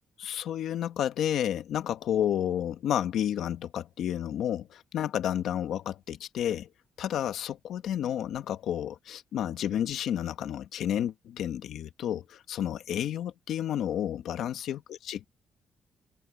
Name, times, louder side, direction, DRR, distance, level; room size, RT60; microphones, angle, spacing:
voice 1, 0.2-6.7 7.0-15.3, left 10 dB, 85° left, 1.4 m, -31 dB
open air
cardioid pair, 155°, 0 cm